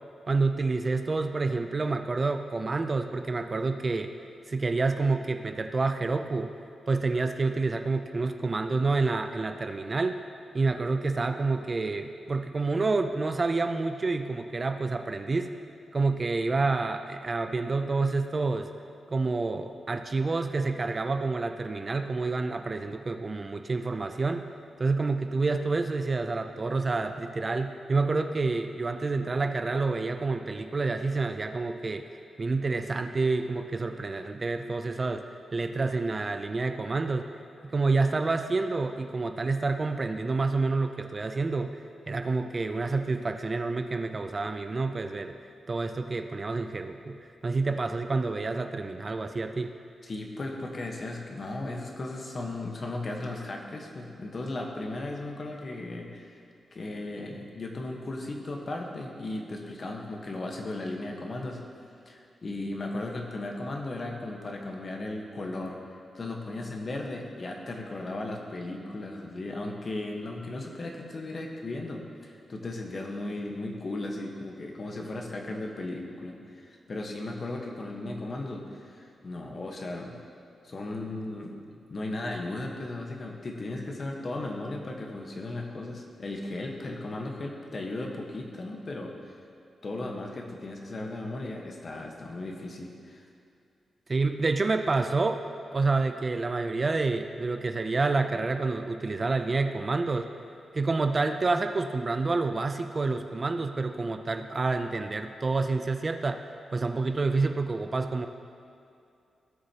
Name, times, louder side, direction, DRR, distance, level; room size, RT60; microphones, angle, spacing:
voice 1, 0.3-4.1 4.5-6.5 6.9-10.2 10.5-15.6 15.9-18.7 19.1-24.5 24.8-32.1 32.4-35.2 35.5-37.3 37.6-41.8 42.1-45.3 45.7-49.7 94.1-95.4 95.7-100.3 100.7-108.3, right 3 dB, 35° right, 7 dB, 0.4 m, -28 dB
voice 2, 50.0-56.4 56.7-61.6 62.1-65.8 66.1-80.2 80.6-81.5 81.9-89.4 89.8-93.3, left 2 dB, 45° left, 1 dB, 1.2 m, -36 dB
17.5 x 6.4 x 2.9 m, 2.5 s
wide cardioid pair, 105°, 0 cm